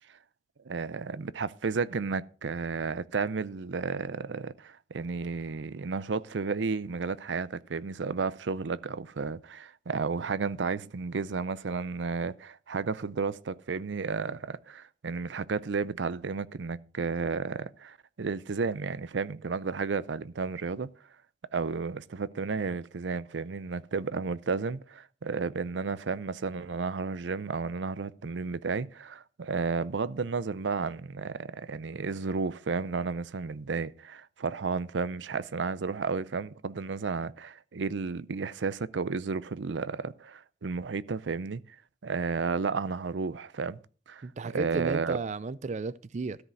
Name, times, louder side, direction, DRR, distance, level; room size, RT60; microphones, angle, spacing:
voice 1, 0.7-20.9 21.5-41.6 42.0-43.8 44.1-45.2, right 4 dB, 85° right, 0.6 m, -32 dB
voice 2, 44.2-46.4, right 4 dB, 40° right, 0.4 m, -34 dB
13.5 x 5.0 x 7.7 m
head